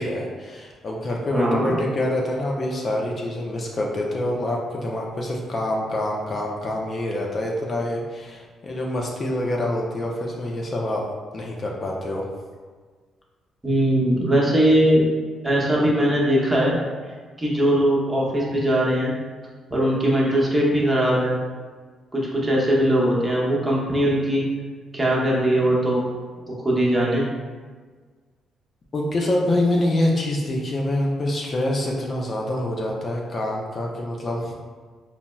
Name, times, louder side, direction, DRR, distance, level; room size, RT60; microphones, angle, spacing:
voice 1, 0.0-11.1 11.3-12.3 28.9-34.5, left 1 dB, 40° left, -1 dB, 0.4 m, -26 dB
voice 2, 1.3-1.7 13.6-15.1 15.4-16.8 17.4-19.1 19.7-21.3 22.1-24.5 24.9-26.0 26.5-27.2, right 1 dB, 15° right, -5 dB, 0.8 m, -20 dB
4.0 x 2.0 x 2.2 m, 1.5 s
cardioid pair, 90°, 0 cm